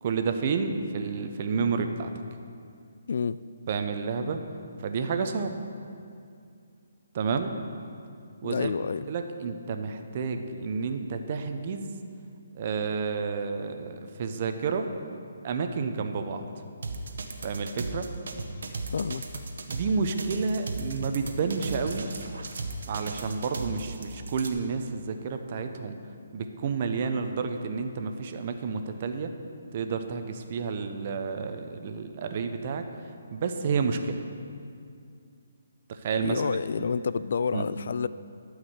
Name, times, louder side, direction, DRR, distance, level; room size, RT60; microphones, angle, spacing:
voice 1, 0.0-2.1 3.7-4.4 4.8-5.6 7.1-7.5 8.4-8.8 9.1-11.9 12.5-14.9 15.4-16.4 17.4-18.1 19.7-22.1 22.9-26.0 26.3-29.3 29.7-32.8 33.3-34.2 35.9-36.4 36.8-36.9 37.5-37.7, right 5 dB, 40° right, 6 dB, 0.8 m, -30 dB
voice 2, 3.1-3.4 8.4-9.1 18.9-19.2 36.2-38.1, left 5 dB, 60° left, 15 dB, 0.3 m, -29 dB
sound 1, 16.8-24.5, right 3 dB, 70° right, 1.1 m, -36 dB
12.5 x 4.8 x 8.1 m, 2.4 s
hypercardioid pair, 160°, 0 cm